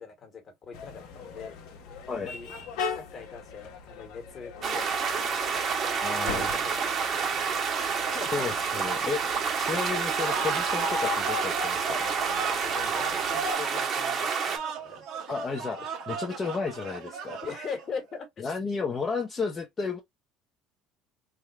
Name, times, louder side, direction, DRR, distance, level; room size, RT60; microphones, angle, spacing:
voice 1, 0.0-1.6 2.1-2.5 2.9-7.5 8.1-8.5 9.2-9.4 11.9-12.0 12.6-15.0 17.4-18.6, left 5 dB, 40° left, 1.6 m, -42 dB
sound 1, 0.7-13.5, left 5 dB, 75° left, 1.1 m, -41 dB
sound 2, 4.6-14.6, right 6 dB, 45° right, 1.2 m, -29 dB
voice 2, 6.0-6.5 8.3-9.2 9.6-12.0 15.3-17.4 18.4-20.0, left 5 dB, 25° left, 0.8 m, -32 dB
sound 3, 10.1-18.0, right 3 dB, 70° right, 1.4 m, -35 dB
3.6 x 2.3 x 3.0 m
supercardioid pair, 105°, 0 cm